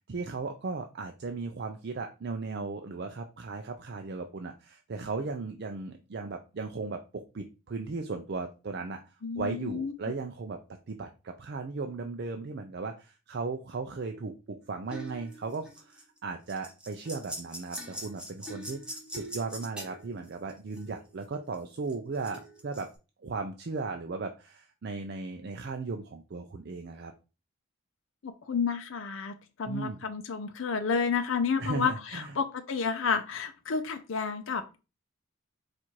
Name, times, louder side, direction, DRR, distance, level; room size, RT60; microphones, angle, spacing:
voice 1, 0.1-10.6 10.9-22.9 23.2-27.1 29.7-30.0 31.6-32.3, right 4 dB, 50° right, 5 dB, 0.4 m, -36 dB
voice 2, 9.2-9.9 28.2-29.3 29.6-34.8, left 5 dB, 65° left, 7 dB, 0.5 m, -30 dB
sound 1, 14.9-16.2 16.5-21.1 21.3-22.9, right 1 dB, 5° right, 0.9 m, -42 dB
4.2 x 2.5 x 4.5 m, 0.31 s
head